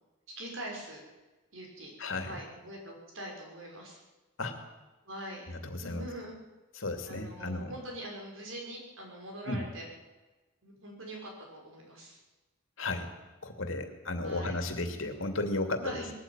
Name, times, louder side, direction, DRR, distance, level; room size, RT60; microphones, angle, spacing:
voice 1, 0.3-1.0 1.5-1.9 2.2-4.0 5.0-5.5 5.8-6.3 7.1-9.9 10.6-12.2 14.2-14.6 15.8-16.1, right 1 dB, 70° right, 0 dB, 6.1 m, -43 dB
voice 2, 2.0-2.4 4.4-4.6 5.5-6.1 6.8-7.7 9.5-9.6 12.8-13.1 13.4-16.0, left 2 dB, 70° left, 6 dB, 2.6 m, -34 dB
20.5 x 14.0 x 9.1 m, 1.2 s
head